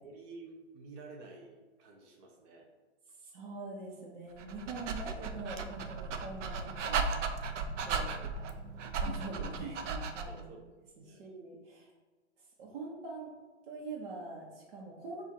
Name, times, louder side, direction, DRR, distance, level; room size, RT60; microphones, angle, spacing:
voice 1, 0.0-2.7 7.8-8.3 10.2-10.7 11.0-11.2, right 3 dB, 15° right, -1 dB, 0.3 m, -51 dB
voice 2, 3.2-7.1 7.8-8.1 9.0-10.5 11.0-11.9 12.6-13.3 13.7-15.2, right 3 dB, 50° right, -4 dB, 0.9 m, -43 dB
Dog, 4.4-10.5, right 4 dB, 75° right, 0.6 m, -36 dB
7.0 x 2.4 x 2.7 m, 1.3 s
hypercardioid pair, 130°, 37 cm